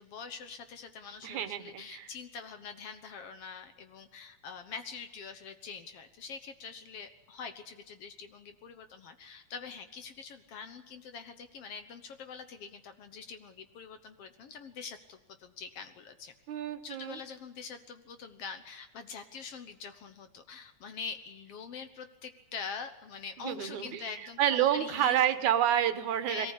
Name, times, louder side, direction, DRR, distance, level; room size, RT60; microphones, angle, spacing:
voice 1, 0.0-16.3 16.8-25.3 26.2-26.5, left 5 dB, 60° left, 9 dB, 1.9 m, -44 dB
voice 2, 1.2-2.1 16.5-17.2 23.4-26.5, right 11 dB, 80° right, 10 dB, 2.6 m, -29 dB
22.5 x 18.0 x 8.4 m, 1.0 s
omnidirectional pair, 3.4 m